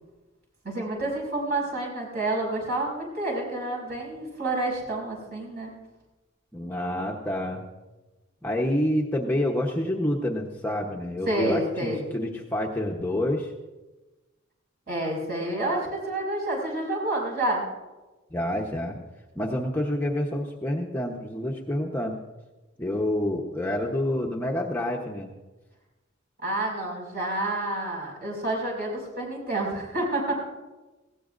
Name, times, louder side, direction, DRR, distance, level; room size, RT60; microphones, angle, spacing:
voice 1, 0.6-5.7 11.3-12.0 14.9-17.7 26.4-30.3, right 1 dB, 50° right, -2 dB, 5.6 m, -29 dB
voice 2, 6.5-7.6 8.4-13.5 18.3-19.0 19.3-22.2 22.8-25.3, left 1 dB, 10° left, -2 dB, 1.0 m, -28 dB
19.5 x 17.0 x 2.6 m, 1.1 s
head